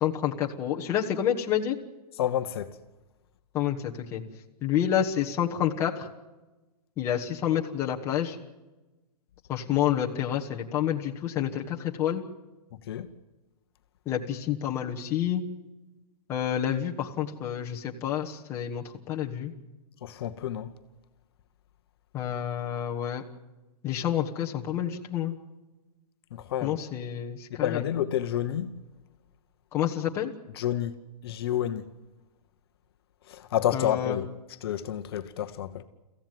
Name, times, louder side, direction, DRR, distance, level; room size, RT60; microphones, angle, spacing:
voice 1, 0.0-1.8 3.5-3.8 4.1-4.2 4.6-6.1 7.0-8.4 9.5-12.2 14.1-15.4 16.3-19.5 22.1-23.2 23.8-25.3 26.6-27.8 29.7-30.3 33.7-34.1, left 10 dB, 15° left, 1.1 m, -28 dB
voice 2, 2.1-2.7 12.9-13.1 20.0-20.7 26.3-26.8 27.6-28.7 30.5-31.0 31.2-31.9 33.3-35.8, left 11 dB, 40° left, 1.0 m, -30 dB
24.0 x 15.5 x 9.2 m
hypercardioid pair, 175°, 19 cm